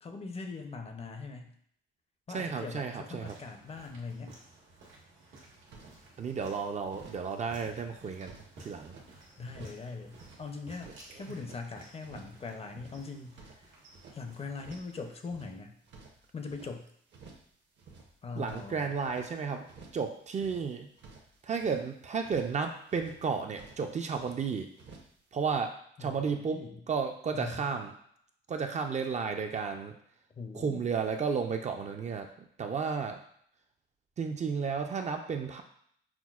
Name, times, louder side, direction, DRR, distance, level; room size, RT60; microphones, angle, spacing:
voice 1, 0.0-1.5 2.3-4.4 9.4-10.9 11.1-13.7 14.1-15.8 16.3-16.9 18.2-18.9 26.0-26.8 27.3-27.6 30.3-30.9, left 4 dB, 30° left, 5 dB, 0.5 m, -41 dB
voice 2, 2.3-3.4 6.2-8.9 18.4-19.7 19.9-20.9 21.4-24.7 25.3-27.9 28.5-29.9 30.5-32.3 32.6-33.2 34.2-35.6, right 5 dB, 35° right, 5 dB, 0.4 m, -33 dB
sound 1, 3.2-15.1, right 2 dB, 80° right, 1.3 m, -55 dB
sound 2, 5.7-6.5 6.9-7.3 7.5-9.1 9.4-9.8 10.1-11.6 12.0-12.4 12.7-14.2 14.5-15.0 15.2-16.7 17.1-17.5 17.8-19.3 19.6-20.1 20.3-21.8 22.2-22.6 22.9-23.3 23.5-24.4 24.8-25.2, right 4 dB, 60° right, 0.8 m, -53 dB
5.8 x 2.1 x 2.3 m, 0.67 s
cardioid pair, 90°, 20 cm